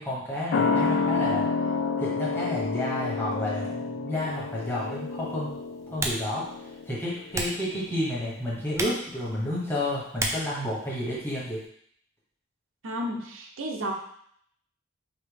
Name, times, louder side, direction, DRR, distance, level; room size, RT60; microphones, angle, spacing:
voice 1, 0.0-1.5 2.0-5.5 5.9-11.6, left 1 dB, 10° left, -7 dB, 1.2 m, -31 dB
sound 1, 0.5-7.6 7.9-8.0, left 4 dB, 65° left, 0.3 m, -29 dB
Typing, 4.2-11.7, right 1 dB, 15° right, 0.4 m, -37 dB
voice 2, 12.8-13.9, equal, 85° right, 2 dB, 0.7 m, -32 dB
5.0 x 2.8 x 3.4 m, 0.67 s
head